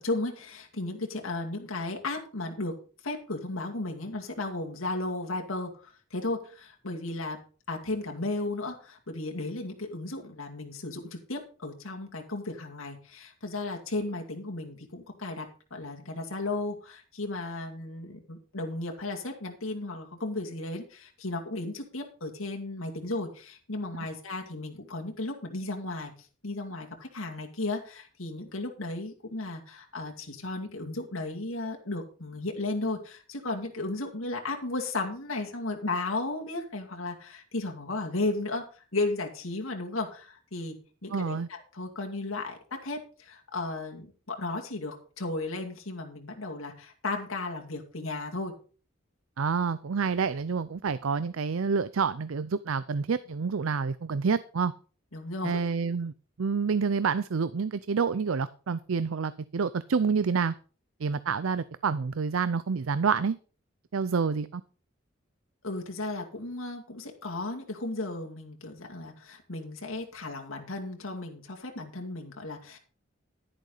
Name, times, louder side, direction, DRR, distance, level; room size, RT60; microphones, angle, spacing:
voice 1, 0.0-2.7 3.0-7.4 7.7-15.5 15.7-26.1 26.4-40.8 41.0-48.5 55.1-55.7 65.6-72.8, left 2 dB, 90° left, 1 dB, 2.4 m, -35 dB
voice 2, 41.1-41.5 49.4-54.7 55.4-56.1 56.4-60.5 61.0-63.4 63.9-64.6, right 5 dB, 85° right, 16 dB, 0.5 m, -28 dB
11.5 x 10.5 x 4.0 m, 0.37 s
head